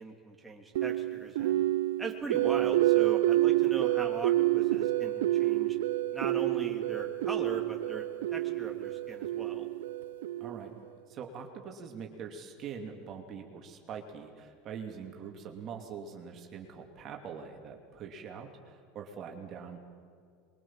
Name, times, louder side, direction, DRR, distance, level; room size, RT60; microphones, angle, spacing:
voice 1, 0.0-1.7 2.0-5.8 6.1-9.7, right 3 dB, 10° right, 1 dB, 3.0 m, -40 dB
sound 1, 0.8-10.8, right 15 dB, 80° right, 0.5 m, -28 dB
voice 2, 10.4-10.7 11.1-19.8, right 6 dB, 45° right, 2 dB, 2.8 m, -43 dB
24.0 x 22.5 x 7.5 m, 2.2 s
hypercardioid pair, 85°, 0 cm